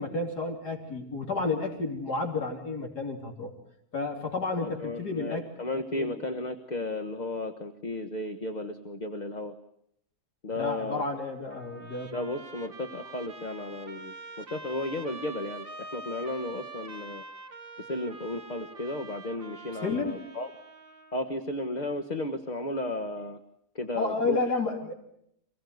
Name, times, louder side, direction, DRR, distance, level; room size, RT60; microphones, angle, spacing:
voice 1, 0.0-3.5 3.9-5.5 5.9-6.2 10.5-12.1 19.8-20.3 23.9-24.9, left 3 dB, 85° left, 2 dB, 3.8 m, -31 dB
voice 2, 4.6-9.5 10.4-11.0 12.1-17.2 17.8-20.5 21.1-23.4 23.7-24.4, left 2 dB, 30° left, 7 dB, 1.2 m, -34 dB
Trumpet, 11.5-21.2, right 2 dB, 35° right, 1.8 m, -45 dB
27.5 x 18.0 x 9.4 m, 0.75 s
omnidirectional pair, 1.7 m